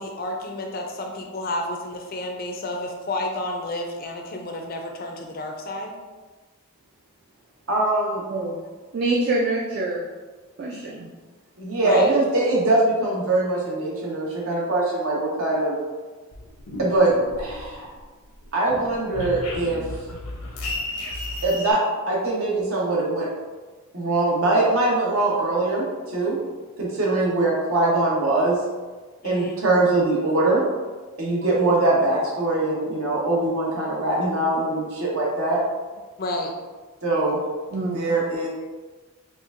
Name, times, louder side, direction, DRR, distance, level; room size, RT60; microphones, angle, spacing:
voice 1, 0.0-5.9 11.8-12.1 29.2-29.6 36.2-36.5, left 1 dB, 40° left, 2 dB, 0.4 m, -30 dB
voice 2, 7.7-8.2 11.6-15.7 16.8-17.1 17.4-17.9 18.5-19.8 21.4-21.8 22.1-23.3 23.9-26.4 26.8-28.6 29.2-30.6 31.2-35.6 37.0-37.4 37.9-38.5, right 2 dB, 70° right, -4 dB, 1.0 m, -22 dB
voice 3, 8.3-8.6 8.9-10.1 10.6-11.1 37.7-38.0, right 2 dB, 45° right, -1 dB, 0.3 m, -25 dB
sound 1, 16.3-18.0 18.3-21.7, left 2 dB, 85° left, 0.7 m, -33 dB
4.4 x 2.5 x 2.4 m, 1.3 s
head